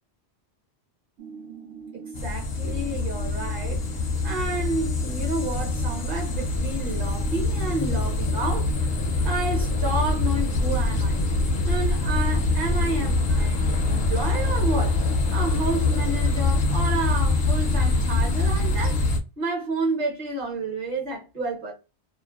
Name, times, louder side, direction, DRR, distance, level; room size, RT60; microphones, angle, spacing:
sound 1, 1.2-19.1, right 6 dB, 80° right, 0.9 m, -43 dB
voice 1, 1.9-3.8 4.2-8.9 9.2-11.2 11.6-15.0 15.3-19.0 19.4-21.7, right 2 dB, 50° right, 1.1 m, -30 dB
sound 2, 2.1-19.2, left 2 dB, 55° left, 0.6 m, -24 dB
2.5 x 2.1 x 2.3 m
omnidirectional pair, 1.1 m